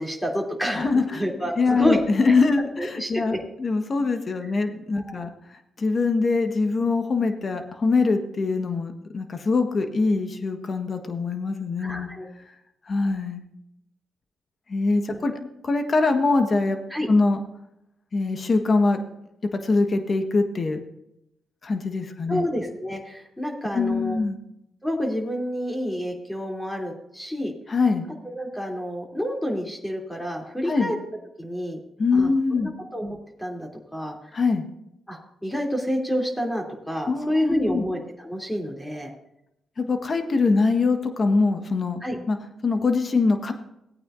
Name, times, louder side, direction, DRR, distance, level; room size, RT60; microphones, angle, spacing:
voice 1, 0.0-2.3 2.8-3.2 5.0-5.3 11.8-12.3 15.1-15.2 16.9-17.1 22.3-24.2 24.8-27.5 28.2-31.0 31.4-31.8 32.1-34.2 35.1-39.1 42.0-42.2, equal, 10° left, 0 dB, 3.1 m, -29 dB
voice 2, 0.7-1.3 1.6-5.3 5.8-12.1 12.9-13.4 14.7-16.8 17.1-17.4 18.1-19.0 19.5-20.8 21.6-22.5 23.7-24.4 27.7-28.1 30.7-30.9 32.0-32.7 34.3-34.7 37.1-37.8 39.8-42.0 42.3-42.4 42.6-43.5, left 3 dB, 45° left, 6 dB, 1.5 m, -23 dB
17.0 x 8.9 x 2.6 m, 0.82 s
supercardioid pair, 50°, 0 cm